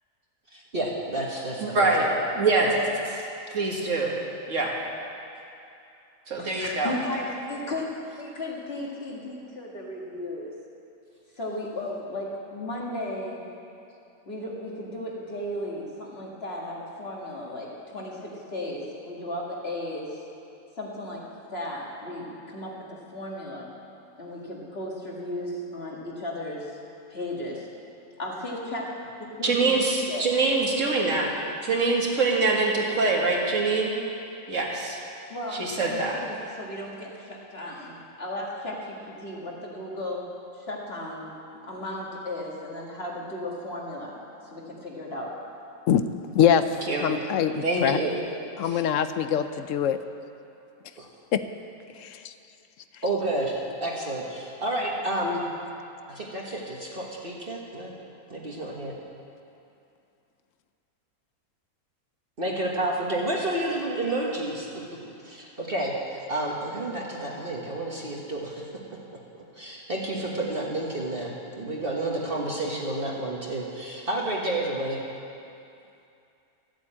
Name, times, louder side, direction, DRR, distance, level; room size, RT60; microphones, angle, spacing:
voice 1, 0.5-2.1 2.6-2.7 51.0-51.1 53.0-55.4 56.1-57.9 58.3-58.9 62.4-65.0 65.2-68.6 69.3-75.0, right 1 dB, 40° right, -3 dB, 1.6 m, -30 dB
voice 2, 1.6-2.1 2.3-2.7 3.5-4.1 4.5-4.7 6.3-6.9 29.4-31.3 31.6-34.0 34.5-35.0 35.6-36.2 46.9-47.1 47.6-48.1 48.7-48.8, right 3 dB, 60° right, -1 dB, 2.1 m, -24 dB
voice 3, 6.4-7.9 8.2-10.5 11.4-13.4 14.3-20.2 20.8-23.7 24.2-26.8 27.1-27.7 28.2-29.7 30.1-30.3 35.3-40.3 40.5-41.4 41.7-44.1 44.5-45.3, left 1 dB, 45° left, -3 dB, 2.3 m, -35 dB
voice 4, 46.3-46.7 47.0-48.0 48.6-50.0 51.3-51.4 52.0-52.3, left 9 dB, 70° left, 10 dB, 0.9 m, -23 dB
13.5 x 8.0 x 8.6 m, 2.7 s
omnidirectional pair, 1.5 m